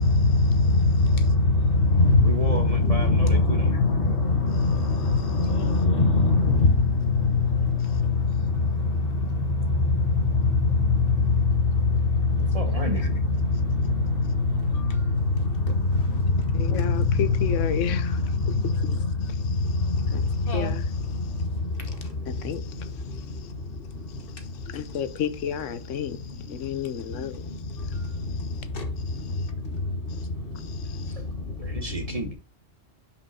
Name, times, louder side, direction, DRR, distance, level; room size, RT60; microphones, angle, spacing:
voice 1, 0.0-8.7 9.1-19.1 19.7-20.0 20.5-20.7 28.7-28.8, left 3 dB, 50° left, 1.2 m, -22 dB
voice 2, 2.2-3.7 12.4-13.0 31.0-31.2 31.6-32.3, right 2 dB, 35° right, 0.8 m, -33 dB
voice 3, 16.5-21.3 22.3-23.5 24.1-28.7 29.1-29.5 30.1-30.3 30.5-31.1, left 9 dB, 85° left, 1.1 m, -34 dB
5.5 x 5.2 x 4.2 m
omnidirectional pair, 1.3 m